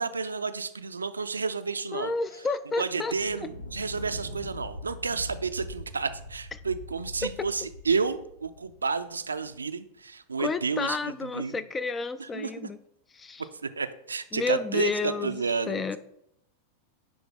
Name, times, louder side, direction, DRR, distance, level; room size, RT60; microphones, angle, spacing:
voice 1, 0.0-2.1 2.8-11.5 12.2-12.7 13.6-15.8, right 4 dB, 75° right, 12 dB, 0.4 m, -31 dB
voice 2, 1.9-3.1 3.4-3.5 7.2-7.3 10.4-12.8 13.2-13.4 14.3-15.4 15.7-16.0, left 4 dB, 20° left, 15 dB, 0.3 m, -31 dB
Thunder, 3.0-9.7, left 1 dB, 85° left, 0.9 m, -42 dB
10.0 x 3.4 x 3.8 m, 0.78 s
figure-of-eight pair, 90°, 0 cm